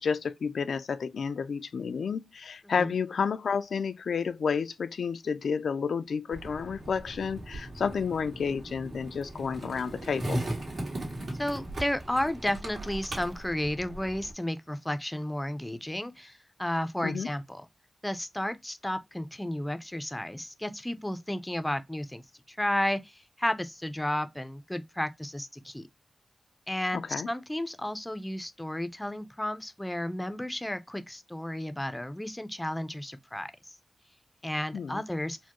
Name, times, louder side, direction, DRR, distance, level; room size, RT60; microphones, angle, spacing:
voice 1, 0.0-10.4 17.0-17.3 26.9-27.3 34.7-35.0, left 6 dB, 85° left, 0.3 m, -31 dB
Skateboard, 6.3-14.3, right 1 dB, 70° right, 1.8 m, -38 dB
voice 2, 11.4-17.7 18.0-25.9 26.7-33.7 34.4-35.4, left 1 dB, 10° left, 0.4 m, -33 dB
4.3 x 2.1 x 2.9 m
wide cardioid pair, 115°, 0 cm